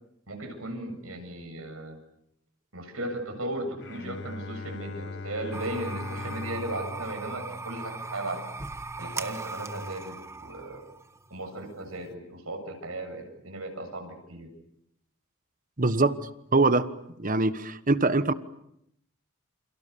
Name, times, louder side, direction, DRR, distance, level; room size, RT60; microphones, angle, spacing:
voice 1, 0.3-2.0 2.7-8.4 9.0-10.1 10.4-10.8 11.3-14.5, right 1 dB, 80° right, 4 dB, 7.7 m, -36 dB
Bowed string instrument, 3.8-9.1, left 3 dB, 55° left, 1.1 m, -41 dB
sound 1, 5.5-12.1, right 3 dB, 15° right, 1.0 m, -39 dB
voice 2, 15.8-16.2 16.5-16.9 17.2-18.3, right 3 dB, 40° right, 13 dB, 1.2 m, -23 dB
29.5 x 28.0 x 7.0 m, 0.76 s
head